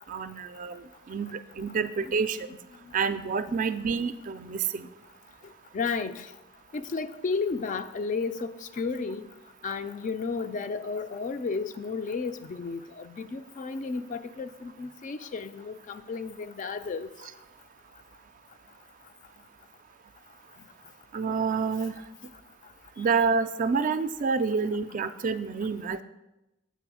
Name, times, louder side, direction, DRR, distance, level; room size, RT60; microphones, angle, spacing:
voice 1, 0.1-2.5 2.9-4.9 21.1-21.9 23.0-26.0, right 5 dB, 40° right, 0.3 m, -28 dB
voice 2, 5.7-6.3 6.7-9.2 9.6-17.1, left 4 dB, 40° left, 0.3 m, -33 dB
7.0 x 4.1 x 6.1 m
head